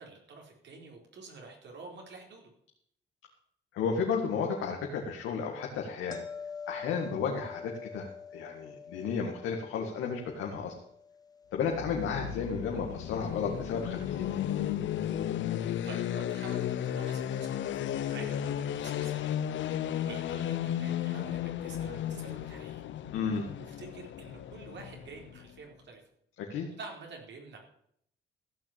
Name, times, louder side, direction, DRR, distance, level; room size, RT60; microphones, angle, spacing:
voice 1, 0.0-2.5 15.4-19.3 19.8-22.8 23.6-26.0 26.7-27.6, right 4 dB, 65° right, 1 dB, 4.5 m, -48 dB
voice 2, 3.7-6.2 6.7-10.7 11.5-14.4 23.1-23.5 26.4-26.7, left 6 dB, 90° left, 0 dB, 1.9 m, -33 dB
sound 1, 6.1-13.1 18.4-18.5, left 6 dB, 20° left, 1.9 m, -47 dB
sound 2, 11.6-25.5, left 10 dB, 70° left, 0.8 m, -34 dB
15.0 x 6.2 x 8.7 m, 0.70 s
cardioid pair, 90°, 20 cm